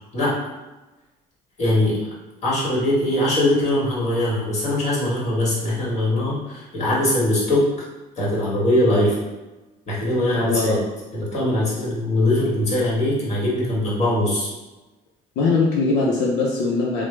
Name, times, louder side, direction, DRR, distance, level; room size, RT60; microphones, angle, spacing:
voice 1, 1.6-2.0 2.4-7.6 8.2-9.1 9.9-10.8 11.1-14.5, left 1 dB, 40° left, -6 dB, 1.5 m, -21 dB
voice 2, 10.5-10.8 15.4-17.0, left 3 dB, 85° left, -4 dB, 0.6 m, -21 dB
3.0 x 2.0 x 3.3 m, 1.1 s
cardioid pair, 110°, 17 cm